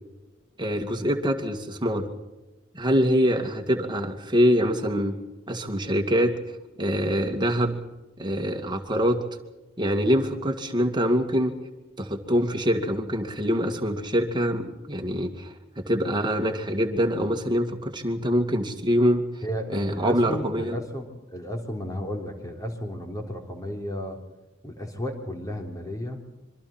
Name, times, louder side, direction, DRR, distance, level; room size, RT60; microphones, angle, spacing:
voice 1, 0.6-2.1 2.7-5.2 5.5-6.3 6.8-7.8 8.2-9.2 9.8-11.5 12.0-19.3 19.7-20.8, equal, 20° right, 4 dB, 2.3 m, -24 dB
voice 2, 19.4-24.2 24.6-26.2, equal, 20° left, 3 dB, 3.5 m, -33 dB
25.5 x 24.5 x 4.4 m, 1.0 s
head